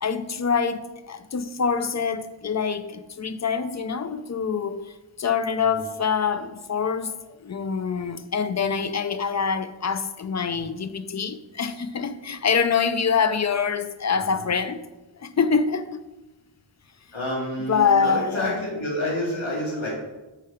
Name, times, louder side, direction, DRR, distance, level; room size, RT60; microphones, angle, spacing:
voice 1, 0.0-4.9 5.2-7.2 7.4-14.8 15.2-16.0 17.7-18.6, left 6 dB, 35° left, 0.4 m, -25 dB
voice 2, 14.1-14.5 17.1-19.9, left 1 dB, 70° left, 2.0 m, -29 dB
4.7 x 4.5 x 4.7 m
wide cardioid pair, 50°, 49 cm